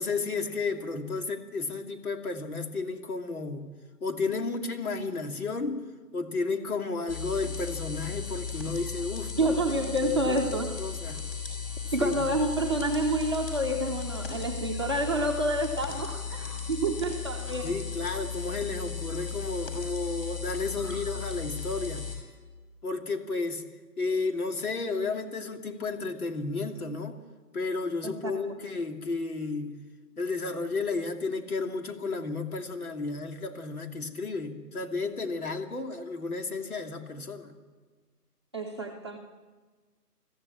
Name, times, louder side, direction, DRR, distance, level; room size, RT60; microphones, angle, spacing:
voice 1, 0.0-3.6 4.0-5.8 6.1-10.4 10.8-11.2 12.0-12.2 17.6-22.1 22.8-23.6 24.0-27.2 27.5-29.7 30.2-37.5, left 3 dB, 60° left, 4 dB, 2.9 m, -32 dB
sound 1, 7.1-22.2, left 6 dB, 35° left, 6.0 m, -36 dB
voice 2, 9.4-10.8 11.9-17.8 28.0-28.3 38.5-39.2, right 1 dB, 15° right, -1 dB, 1.0 m, -28 dB
22.5 x 14.5 x 8.4 m, 1.4 s
hypercardioid pair, 165°, 49 cm